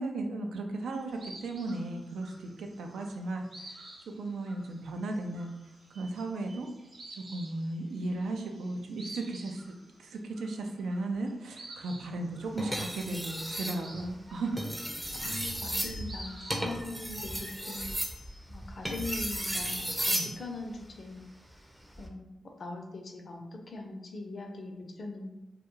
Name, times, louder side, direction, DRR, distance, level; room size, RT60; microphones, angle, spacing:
voice 1, 0.0-3.8 4.2-5.5 5.9-6.7 7.2-9.6 10.0-14.7 20.1-20.3, right 2 dB, 85° right, 3 dB, 0.3 m, -35 dB
sound 1, 0.9-16.6, right 1 dB, 70° right, 0.8 m, -51 dB
sound 2, 12.6-13.8 14.4-20.4 21.8-22.1, equal, 10° right, 0.5 m, -34 dB
sound 3, 13.9-14.6 15.1-17.9, right 1 dB, 35° right, 0.9 m, -48 dB
voice 2, 15.2-17.8 18.5-21.2 22.0-22.3 22.6-25.3, left 2 dB, 60° left, 2 dB, 0.5 m, -41 dB
2.3 x 2.2 x 3.0 m, 0.94 s
cardioid pair, 60°, 0 cm